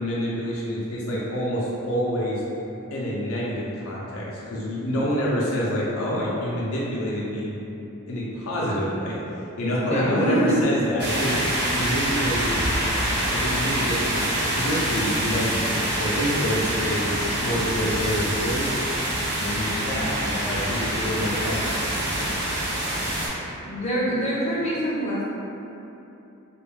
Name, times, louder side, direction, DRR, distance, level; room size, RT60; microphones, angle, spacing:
voice 1, 0.0-2.4 2.9-7.5 8.0-9.2 9.6-11.4 11.7-12.7 13.3-18.7 19.4-22.0, equal, 80° left, -6 dB, 0.5 m, -27 dB
voice 2, 9.9-10.6 23.6-25.2, right 1 dB, 30° left, -8 dB, 0.6 m, -25 dB
sound 1, 11.0-23.3, right 1 dB, 55° right, 0.6 m, -26 dB
2.4 x 2.2 x 3.2 m, 2.9 s
head